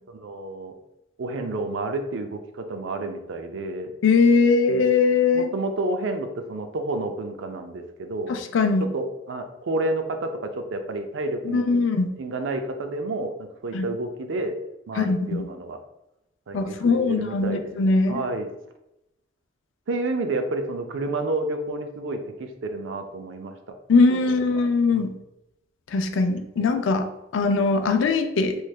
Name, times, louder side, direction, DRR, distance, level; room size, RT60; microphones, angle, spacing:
voice 1, 0.1-0.7 1.2-3.9 5.3-8.3 8.8-11.7 12.2-14.6 14.9-15.8 16.5-17.7 18.1-18.5 19.9-23.6 24.3-24.4 24.9-25.1 26.6-26.7, right 2 dB, 85° right, 6 dB, 0.4 m, -30 dB
voice 2, 4.0-5.5 8.3-8.9 11.4-12.1 13.7-13.9 15.0-15.4 16.5-18.2 23.9-25.1 25.9-27.1 27.3-28.6, left 4 dB, 85° left, 7 dB, 0.4 m, -21 dB
3.2 x 3.1 x 2.3 m, 0.88 s
head